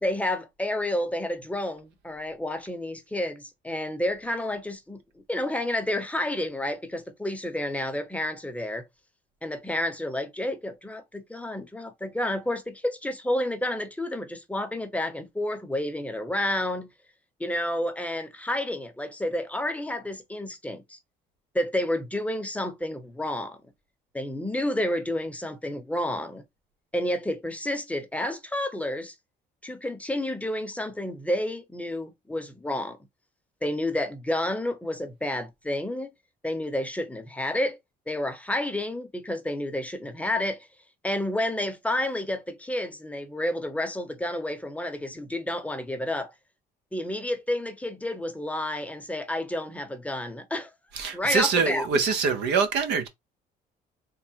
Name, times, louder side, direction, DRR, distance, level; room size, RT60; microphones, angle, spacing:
voice 1, 0.0-5.0 5.3-8.8 9.4-16.9 17.4-21.0 21.5-23.6 24.1-26.4 26.9-29.1 29.6-33.0 33.6-36.1 36.4-37.8 38.1-40.7 41.0-46.3 46.9-50.7 51.1-51.9, left 1 dB, 10° left, 0.7 m, -30 dB
voice 2, 50.9-53.1, right 5 dB, 85° right, 0.9 m, -24 dB
3.6 x 2.1 x 4.3 m
cardioid pair, 110°, 17 cm